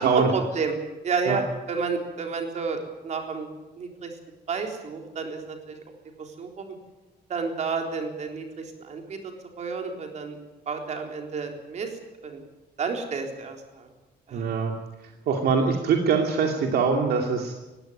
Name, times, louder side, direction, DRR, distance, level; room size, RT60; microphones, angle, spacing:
voice 1, 0.1-0.7 1.0-1.4 1.7-2.8 3.0-3.5 3.8-4.1 4.5-5.8 6.2-6.7 7.3-9.2 9.6-10.4 10.7-11.9 12.2-12.4 12.8-13.9 14.3-14.4, right 5 dB, 40° right, 3 dB, 3.9 m, -30 dB
voice 2, 14.3-14.7 15.3-17.5, right 5 dB, 65° right, 2 dB, 2.5 m, -23 dB
19.5 x 17.0 x 9.2 m, 1.1 s
cardioid pair, 180°, 17 cm